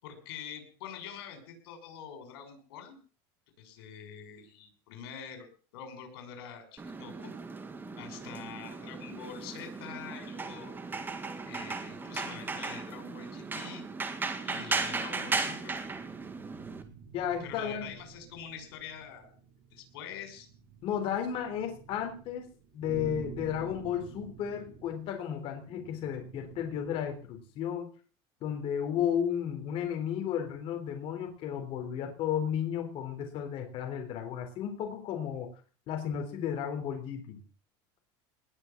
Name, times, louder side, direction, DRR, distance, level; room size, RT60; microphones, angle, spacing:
voice 1, 0.0-3.0 3.6-5.5 5.7-7.3 8.0-10.7 11.4-13.8 14.4-15.8 17.4-19.3 19.7-20.5, left 8 dB, 85° left, 6 dB, 6.2 m, -45 dB
sound 1, 6.8-16.8, right 4 dB, 15° right, 1.9 m, -36 dB
sound 2, 14.8-27.4, right 7 dB, 55° right, 5.2 m, -50 dB
voice 2, 17.1-17.9 20.8-22.5 22.7-27.9 28.4-35.5 35.9-37.4, left 9 dB, 50° left, 3 dB, 3.7 m, -33 dB
20.0 x 6.8 x 7.3 m, 0.40 s
supercardioid pair, 140°, 12 cm